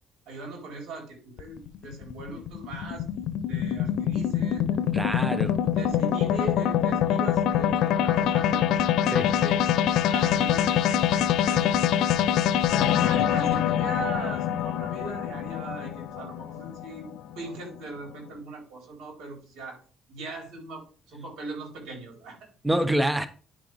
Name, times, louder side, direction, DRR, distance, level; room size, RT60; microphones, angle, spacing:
voice 1, 0.3-3.0 3.5-4.9 5.7-8.9 9.2-9.6 10.0-12.4 13.0-17.1 17.3-19.8 20.1-22.5, right 3 dB, 80° right, 4.2 m, -40 dB
sound 1, 1.4-17.8, left 10 dB, 80° left, 0.6 m, -25 dB
voice 2, 4.9-5.6 9.1-9.3 22.6-23.3, right 1 dB, 5° right, 0.7 m, -26 dB
10.0 x 5.9 x 3.4 m
cardioid pair, 125°, 0 cm